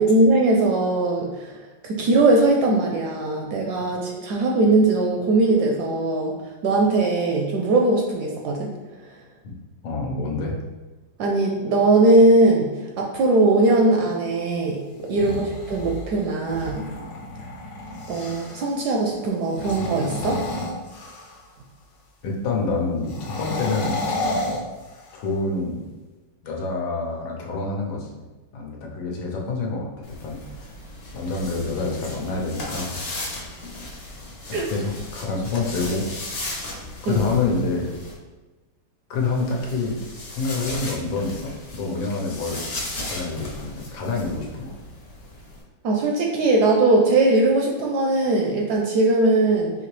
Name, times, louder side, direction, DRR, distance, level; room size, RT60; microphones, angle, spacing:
voice 1, 0.0-1.6 1.8-8.7 11.2-14.8 15.1-16.9 18.1-20.4 34.5-34.7 37.1-37.2 45.8-49.7, right 2 dB, 75° right, 0 dB, 0.9 m, -20 dB
voice 2, 9.8-10.6 15.2-15.4 17.3-17.4 22.2-24.0 25.1-25.8 26.4-28.2 28.5-29.9 30.2-30.4 31.1-33.0 34.7-36.1 37.0-37.9 39.1-40.0 40.3-42.6 43.0-44.8, left 3 dB, 90° left, -1 dB, 1.6 m, -27 dB
sound 1, 14.9-18.7 19.4-21.5 23.0-25.3, left 2 dB, 65° left, 1.2 m, -31 dB
sound 2, 30.0-38.1 39.1-45.6, left 2 dB, 50° left, 0.7 m, -36 dB
4.9 x 2.9 x 3.1 m, 1.2 s
omnidirectional pair, 2.1 m